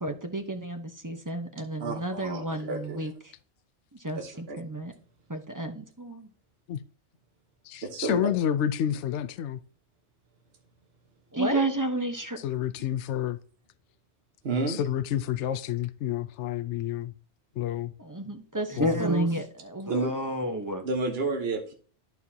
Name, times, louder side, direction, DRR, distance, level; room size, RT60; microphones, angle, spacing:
voice 1, 0.0-3.1 4.0-4.9 5.3-6.3 11.3-12.4 18.0-20.9, right 1 dB, 20° right, 0.9 m, -30 dB
voice 2, 1.8-3.1 4.1-4.6 7.8-8.3 12.2-12.3 14.4-14.8 19.9-20.1 20.8-21.7, right 3 dB, 55° right, 1.3 m, -31 dB
voice 3, 7.6-9.6 12.4-13.4 14.6-17.1 17.6-17.9 18.8-19.0, left 10 dB, 75° left, 0.9 m, -29 dB
13.0 x 4.7 x 2.8 m
omnidirectional pair, 1.2 m